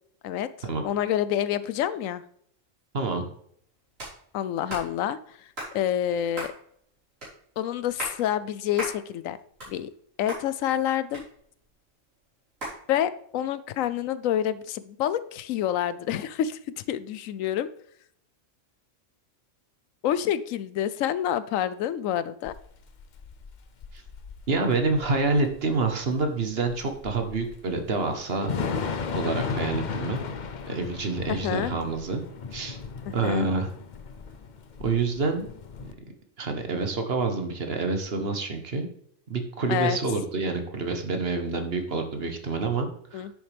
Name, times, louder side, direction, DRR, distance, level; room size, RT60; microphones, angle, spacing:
voice 1, 0.8-2.2 4.3-5.4 5.7-6.5 7.6-9.4 9.7-9.9 10.2-11.2 12.9-16.6 16.9-17.7 20.0-22.5 31.3-31.7 33.1-33.5 39.7-40.0 43.1-43.3, left 10 dB, 85° left, 15 dB, 1.0 m, -27 dB
voice 2, 2.9-3.3 23.9-24.0 24.5-28.6 29.1-30.2 30.7-32.2 32.5-32.8 33.1-33.7 34.8-35.5 36.4-38.9 39.3-43.3, right 3 dB, 50° right, 6 dB, 1.3 m, -27 dB
sound 1, 4.0-4.2 4.7-4.9 5.6-5.7 6.4-6.6 7.2-7.3 7.8-8.2 8.8-9.0 9.4-10.0 10.3-10.4 11.1-11.7 12.6-12.8, right 1 dB, 75° right, 4.3 m, -35 dB
Thunder / Rain, 22.4-35.9, left 5 dB, 45° left, 0.6 m, -36 dB
9.8 x 7.1 x 3.4 m, 0.66 s
omnidirectional pair, 1.3 m